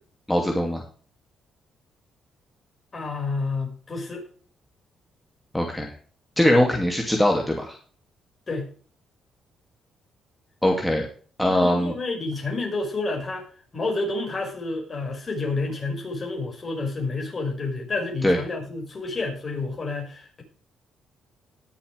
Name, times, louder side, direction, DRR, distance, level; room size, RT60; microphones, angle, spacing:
voice 1, 0.3-0.8 5.5-5.9 6.4-7.8 10.6-11.1 11.4-11.9 18.2-18.4, left 1 dB, 5° left, 1 dB, 2.5 m, -21 dB
voice 2, 2.9-4.3 8.5-8.7 11.5-13.4 13.7-20.4, left 3 dB, 35° left, 2 dB, 5.6 m, -29 dB
20.0 x 7.2 x 3.4 m, 0.43 s
cardioid pair, 90°, 0 cm